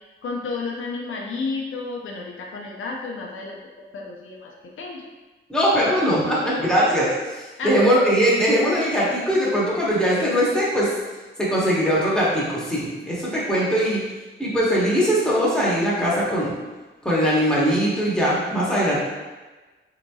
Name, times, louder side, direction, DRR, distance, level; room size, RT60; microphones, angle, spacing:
voice 1, 0.2-5.0 7.6-7.8, left 4 dB, 80° left, -1 dB, 0.5 m, -32 dB
voice 2, 5.5-10.9 11.4-14.0 14.4-16.5 17.0-19.0, equal, 5° left, -7 dB, 0.9 m, -21 dB
3.9 x 2.8 x 2.3 m, 1.2 s
wide cardioid pair, 145°, 21 cm